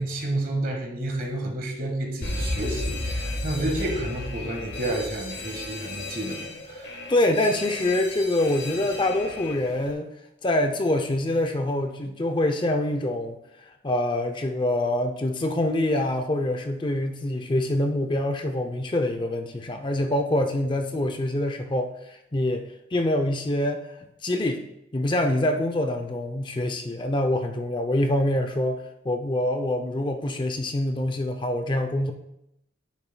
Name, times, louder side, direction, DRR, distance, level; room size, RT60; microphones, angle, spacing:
voice 1, 0.0-6.9, right 1 dB, 45° right, 1 dB, 1.5 m, -30 dB
Alarm, 2.2-9.9, left 2 dB, 60° left, 1.2 m, -33 dB
voice 2, 7.1-10.1 10.4-13.4 13.8-23.9 24.2-24.6 24.9-32.1, left 1 dB, 25° left, 6 dB, 0.5 m, -25 dB
10.0 x 8.9 x 2.2 m, 0.81 s
head